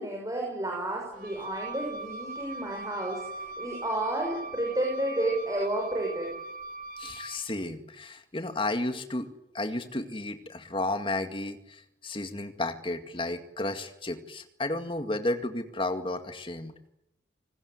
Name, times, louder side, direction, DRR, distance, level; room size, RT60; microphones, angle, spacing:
voice 1, 0.0-6.3, right 1 dB, 20° right, 0 dB, 6.2 m, -31 dB
Wind instrument woodwind instrument, 1.1-7.5, right 2 dB, 45° right, 3.0 m, -40 dB
voice 2, 7.0-9.3 9.5-16.7, left 2 dB, 30° left, 8 dB, 2.1 m, -33 dB
27.0 x 20.0 x 9.6 m, 0.87 s
head